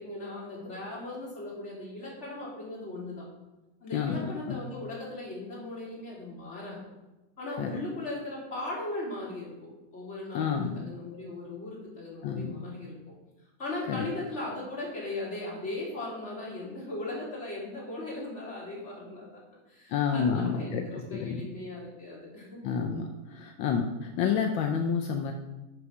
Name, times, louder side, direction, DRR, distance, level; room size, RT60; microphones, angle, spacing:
voice 1, 0.0-3.3 3.8-6.9 7.4-10.5 10.8-12.9 13.6-19.3 19.7-22.7, left 2 dB, 35° left, -5 dB, 3.4 m, -38 dB
voice 2, 3.9-4.6 7.6-7.8 10.3-10.9 12.2-12.6 13.9-14.0 19.9-21.5 22.6-25.3, left 6 dB, 80° left, 4 dB, 1.5 m, -29 dB
7.0 x 6.7 x 6.0 m, 1.1 s
omnidirectional pair, 2.1 m